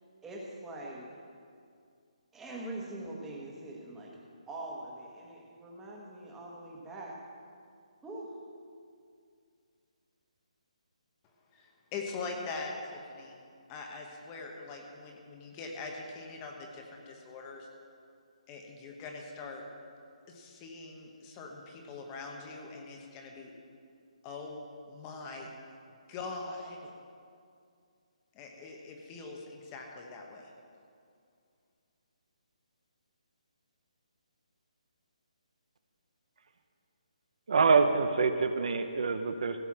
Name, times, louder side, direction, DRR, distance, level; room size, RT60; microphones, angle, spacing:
voice 1, 0.2-1.0 2.3-4.1 4.5-7.1 8.0-8.3, right 1 dB, 5° right, -3 dB, 1.5 m, -43 dB
voice 2, 11.5-13.4 13.7-17.7 18.5-19.6 20.3-23.5 24.2-25.5 26.1-26.9 28.3-30.5, left 3 dB, 20° left, 1 dB, 1.0 m, -42 dB
voice 3, 37.5-39.6, right 4 dB, 60° right, 8 dB, 0.8 m, -26 dB
15.5 x 5.5 x 7.6 m, 2.3 s
hypercardioid pair, 165°, 4 cm